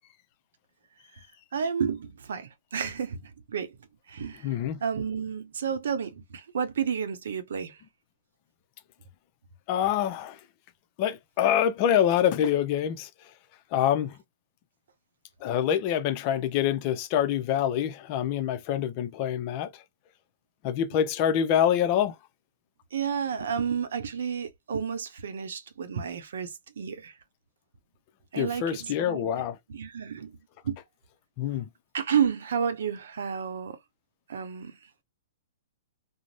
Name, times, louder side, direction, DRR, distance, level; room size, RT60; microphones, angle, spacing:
voice 1, 1.5-3.8 4.1-7.8 22.9-27.1 28.3-29.3 29.7-30.4 30.6-30.8 31.9-33.8 34.3-34.8, right 7 dB, 75° right, 0.6 m, -31 dB
voice 2, 4.4-4.8 9.7-10.4 11.0-13.1 13.7-14.1 15.4-19.7 20.6-22.1 28.4-29.5 31.4-31.7, left 10 dB, 40° left, 0.5 m, -25 dB
2.6 x 2.0 x 3.1 m
hypercardioid pair, 130°, 0 cm